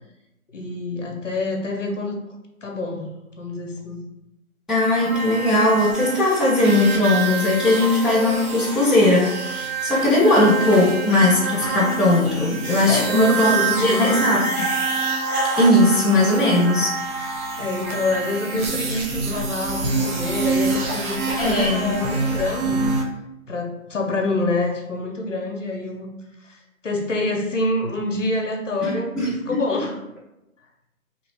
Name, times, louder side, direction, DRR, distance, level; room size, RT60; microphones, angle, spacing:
voice 1, 0.5-2.2 2.6-3.1 3.4-4.0 12.8-14.5 17.5-22.9 23.5-26.1 26.4-30.0, left 2 dB, 60° left, 2 dB, 0.6 m, -26 dB
voice 2, 4.7-13.5 13.8-14.5 15.6-17.0 21.4-22.0 28.8-29.6, left 2 dB, ahead, -8 dB, 0.4 m, -19 dB
sound 1, 5.0-23.0, right 3 dB, 85° right, 0.8 m, -26 dB
2.8 x 2.2 x 2.9 m, 0.88 s
figure-of-eight pair, 175°, 43 cm